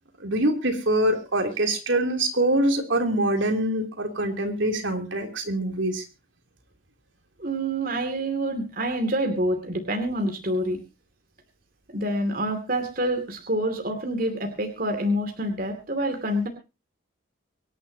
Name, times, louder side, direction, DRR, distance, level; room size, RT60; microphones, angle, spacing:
voice 1, 0.2-6.0, right 1 dB, 65° right, 4 dB, 3.2 m, -24 dB
voice 2, 7.4-10.8 11.9-16.5, right 1 dB, 45° right, 5 dB, 2.7 m, -27 dB
24.5 x 11.0 x 2.9 m, 0.30 s
head